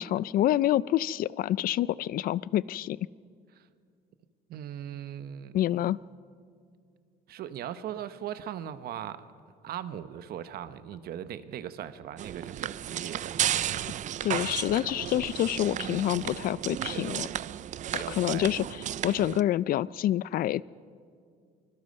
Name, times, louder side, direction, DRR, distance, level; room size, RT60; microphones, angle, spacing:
voice 1, 0.0-3.0 5.5-6.0 14.2-17.3 17.9-18.6 19.0-20.6, left 13 dB, 60° left, 20 dB, 0.4 m, -27 dB
voice 2, 4.5-5.6 7.3-9.3 9.6-13.4 16.9-17.5 17.9-19.0, right 10 dB, 65° right, 12 dB, 1.0 m, -39 dB
sound 1, 12.2-19.4, right 11 dB, 45° right, 0.5 m, -33 dB
24.5 x 21.0 x 5.4 m, 2.2 s
cardioid pair, 110°, 17 cm